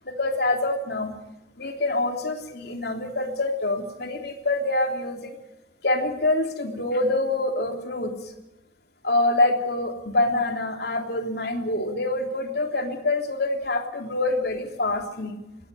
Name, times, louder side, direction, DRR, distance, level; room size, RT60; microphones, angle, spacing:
voice 1, 0.1-1.1 1.6-5.4 5.8-8.3 9.0-15.4, left 2 dB, 60° left, 4 dB, 3.4 m, -26 dB
22.0 x 16.5 x 9.2 m, 0.95 s
head